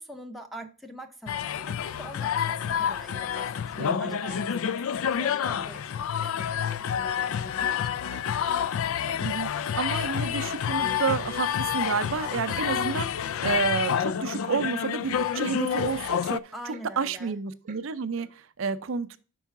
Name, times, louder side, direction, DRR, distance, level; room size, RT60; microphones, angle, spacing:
voice 1, 0.0-8.0 16.5-17.4, right 1 dB, ahead, 0.7 m, -44 dB
sound 1, 1.3-16.4, left 8 dB, 80° left, 0.3 m, -28 dB
Clock, 3.3-3.5 3.8-4.0 4.3-4.5 4.8-4.9 5.2-5.4 5.7-5.9 6.2-6.3 6.7-6.8 7.2-7.3 7.6-8.3 8.6-8.7 9.1-9.2 9.6-9.7 10.0-10.2 10.5-10.7 11.0-11.1 11.5-11.6 11.9-12.1 12.4-12.5 12.9-13.0 13.4-13.5 13.9-14.0 14.3-14.5 14.8-15.0 15.3-15.4 15.8-15.9 16.2-16.4 16.7-16.9 17.2-17.3 17.7-17.8 18.2-18.3, right 4 dB, 35° right, 0.7 m, -49 dB
voice 2, 3.8-4.2 9.2-16.5 17.0-19.2, right 5 dB, 70° right, 0.5 m, -30 dB
5.5 x 4.6 x 5.8 m
head